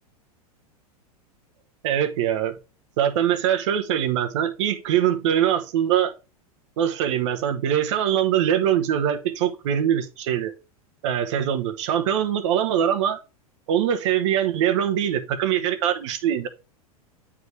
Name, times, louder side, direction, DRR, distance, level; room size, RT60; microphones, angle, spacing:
voice 1, 1.8-2.6 3.0-6.1 6.8-10.5 11.0-13.2 13.7-16.5, right 10 dB, 50° right, 1.1 m, -23 dB
9.3 x 3.6 x 4.6 m
figure-of-eight pair, 90°, 20 cm